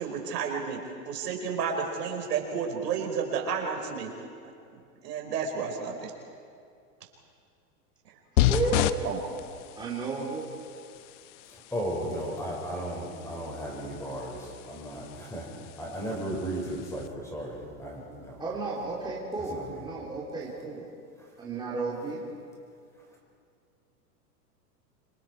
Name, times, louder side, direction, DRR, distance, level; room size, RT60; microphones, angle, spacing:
voice 1, 0.0-4.1 4.7-6.1 9.0-9.2, right 6 dB, 75° right, 1 dB, 4.4 m, -31 dB
sound 1, 8.4-17.1, left 13 dB, 50° left, 0.9 m, -33 dB
voice 2, 8.5-8.9 9.8-10.5 18.4-20.8 21.4-22.2, right 3 dB, 10° right, -5 dB, 3.2 m, -33 dB
voice 3, 11.7-15.5 15.8-18.4 19.5-19.6, right 1 dB, 5° left, -2 dB, 5.7 m, -35 dB
26.5 x 26.0 x 4.7 m, 2.4 s
hypercardioid pair, 130°, 48 cm